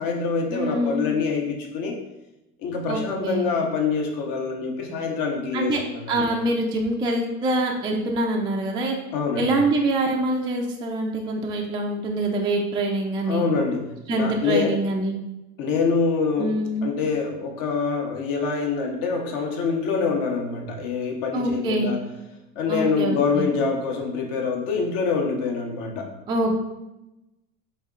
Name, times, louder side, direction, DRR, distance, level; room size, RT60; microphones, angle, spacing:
voice 1, 0.0-2.0 2.6-6.4 9.1-9.6 13.3-14.8 15.6-16.6 16.8-22.0 22.6-26.1, left 5 dB, 55° left, 2 dB, 1.0 m, -25 dB
voice 2, 0.5-1.1 2.9-3.5 5.5-5.8 6.1-9.0 9.4-13.5 14.1-15.1 16.4-16.9 21.3-21.9 22.7-23.5 26.3-26.6, right 1 dB, 15° right, 0 dB, 0.3 m, -25 dB
4.2 x 2.9 x 2.4 m, 0.95 s
hypercardioid pair, 90°, 41 cm